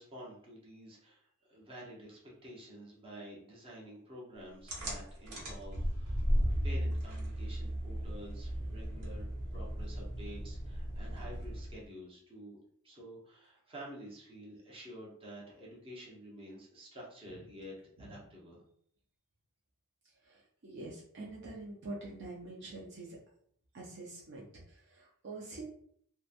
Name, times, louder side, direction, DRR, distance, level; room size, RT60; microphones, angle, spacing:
voice 1, 0.0-12.6 12.8-18.6, equal, 25° right, -4 dB, 0.8 m, -50 dB
sound 1, 4.7-11.9, equal, 90° right, 0.9 m, -35 dB
voice 2, 20.2-23.2 23.7-25.7, right 2 dB, 50° right, -4 dB, 0.5 m, -46 dB
2.9 x 2.1 x 2.4 m, 0.65 s
head